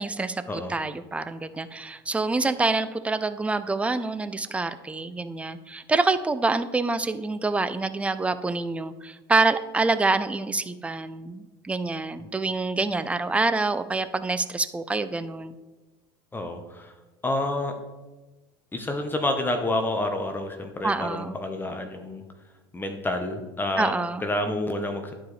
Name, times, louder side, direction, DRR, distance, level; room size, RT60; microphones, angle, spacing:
voice 1, 0.0-15.5 20.8-21.4 23.8-24.2, right 3 dB, 10° right, 12 dB, 0.5 m, -26 dB
voice 2, 16.3-16.9 17.2-17.7 18.7-22.2 22.7-23.9 24.2-25.1, left 1 dB, 15° left, 5 dB, 0.9 m, -28 dB
11.5 x 4.7 x 3.2 m, 1.2 s
hypercardioid pair, 80°, 13 cm